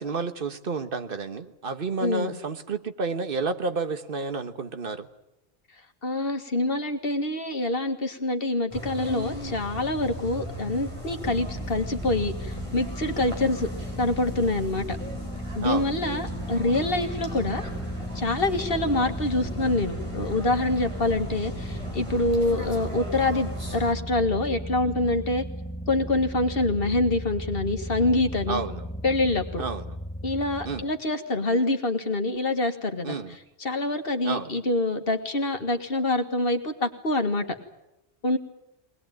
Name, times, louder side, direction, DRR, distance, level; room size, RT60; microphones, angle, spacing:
voice 1, 0.0-5.1 15.6-15.9 28.5-28.8 29.6-29.8 30.6-30.8 33.0-33.3 34.2-34.5, right 4 dB, 55° right, 1.4 m, -30 dB
voice 2, 2.0-2.4 6.0-13.7 14.0-15.0 15.6-17.7 18.2-25.4 25.9-28.6 29.0-29.6 30.2-37.6 38.2-38.4, left 2 dB, 60° left, 2.0 m, -26 dB
sound 1, 8.7-23.9, right 1 dB, 25° right, 4.9 m, -37 dB
sound 2, 11.2-30.8, equal, 5° left, 1.1 m, -36 dB
21.5 x 20.0 x 9.2 m
omnidirectional pair, 1.1 m